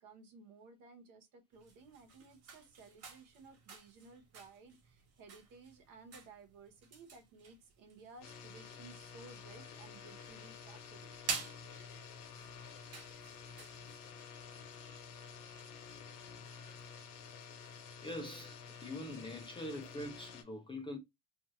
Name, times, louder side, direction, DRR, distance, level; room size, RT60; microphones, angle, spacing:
voice 1, 0.0-11.5, right 4 dB, 65° right, 1.1 m, -57 dB
sound 1, 1.5-14.1, right 5 dB, 45° right, 1.0 m, -49 dB
sound 2, 8.2-20.4, left 6 dB, 65° left, 1.1 m, -51 dB
voice 2, 18.0-21.0, left 1 dB, 15° left, 0.4 m, -43 dB
2.6 x 2.4 x 3.0 m
cardioid pair, 145°, 36 cm